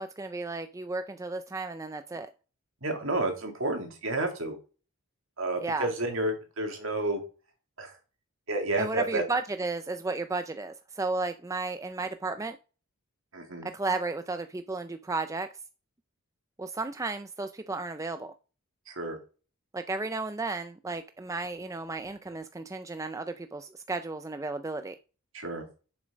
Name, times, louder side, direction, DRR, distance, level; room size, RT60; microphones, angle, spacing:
voice 1, 0.0-2.3 5.6-5.9 8.8-12.6 13.6-15.5 16.6-18.3 19.7-25.0, right 3 dB, 15° right, 0.3 m, -33 dB
voice 2, 2.8-4.6 5.4-7.2 7.8-7.9 8.5-9.2 13.3-13.7 18.9-19.2 25.3-25.6, right 2 dB, 60° right, 2.4 m, -30 dB
7.2 x 6.4 x 5.2 m
head